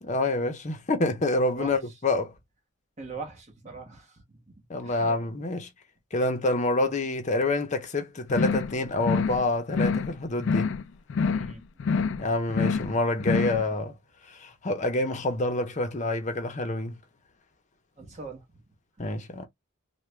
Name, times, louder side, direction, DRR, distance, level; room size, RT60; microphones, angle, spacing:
voice 1, 0.0-2.3 4.7-5.7 6.1-10.7 12.2-13.9 14.3-16.9 19.0-19.4, left 2 dB, 35° left, 0.7 m, -27 dB
voice 2, 3.0-4.5 4.8-5.2 11.3-11.6 12.1-12.2 18.0-18.4, right 4 dB, 35° right, 1.1 m, -41 dB
sound 1, 8.3-8.7 9.0-9.4 9.7-10.1 10.4-10.8 11.1-11.5 11.8-12.2 12.5-12.9 13.2-13.6, left 5 dB, 60° left, 0.3 m, -26 dB
3.4 x 2.2 x 3.2 m
head